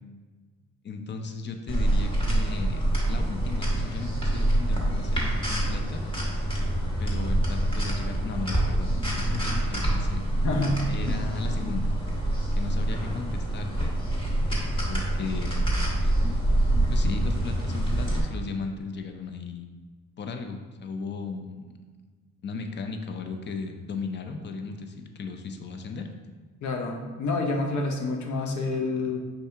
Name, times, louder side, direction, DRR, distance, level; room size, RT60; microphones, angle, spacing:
voice 1, 0.8-6.0 7.0-10.2 10.9-11.9 12.6-14.0 14.9-15.7 16.0-16.1 16.9-19.7 20.2-21.7 22.4-26.1, left 4 dB, 35° left, 5 dB, 0.5 m, -36 dB
sound 1, 1.7-18.2, right 1 dB, 15° left, 1.3 m, -26 dB
voice 2, 10.4-10.8 26.6-29.2, left 2 dB, 70° left, 3 dB, 0.8 m, -28 dB
5.7 x 2.7 x 3.4 m, 1.4 s
cardioid pair, 90°, 30 cm